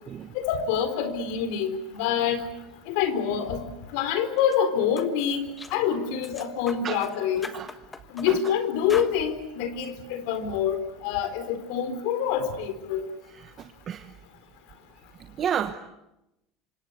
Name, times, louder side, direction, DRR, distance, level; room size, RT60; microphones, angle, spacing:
voice 1, 0.3-2.4 2.9-3.6 3.9-5.4 5.7-7.5 8.1-13.1, left 8 dB, 70° left, 11 dB, 4.0 m, -26 dB
sound 1, 4.4-4.6 5.0-5.1 5.6-5.9 6.2-7.1 7.4-8.6 8.9-9.1, left 3 dB, 10° left, 1.4 m, -40 dB
voice 2, 15.4-15.7, right 9 dB, 30° right, 8 dB, 1.1 m, -29 dB
27.5 x 25.5 x 8.1 m, 0.91 s
cardioid pair, 160°, 0 cm